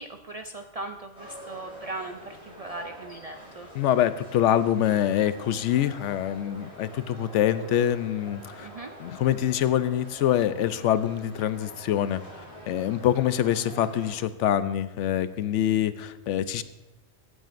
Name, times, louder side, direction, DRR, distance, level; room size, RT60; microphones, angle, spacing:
voice 1, 0.0-3.7 8.6-8.9, right 2 dB, 55° right, 5 dB, 0.4 m, -38 dB
sound 1, 1.1-14.2, equal, 30° left, 3.3 m, -46 dB
voice 2, 3.7-8.7 9.0-12.2 12.7-16.6, left 11 dB, 85° left, 13 dB, 0.9 m, -25 dB
15.5 x 8.9 x 2.5 m, 1.0 s
omnidirectional pair, 1.2 m